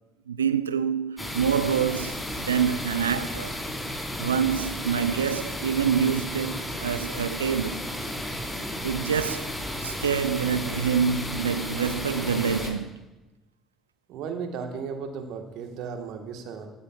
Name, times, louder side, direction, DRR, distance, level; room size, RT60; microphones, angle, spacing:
voice 1, 0.3-3.6 3.9-7.9 8.8-9.5 9.8-12.9, right 7 dB, 90° right, 0.3 m, -26 dB
sound 1, 1.2-12.7, left 1 dB, 10° left, 3.8 m, -33 dB
voice 2, 14.1-16.7, right 6 dB, 65° right, 1.2 m, -35 dB
14.0 x 13.0 x 2.3 m
hypercardioid pair, 50°, 0 cm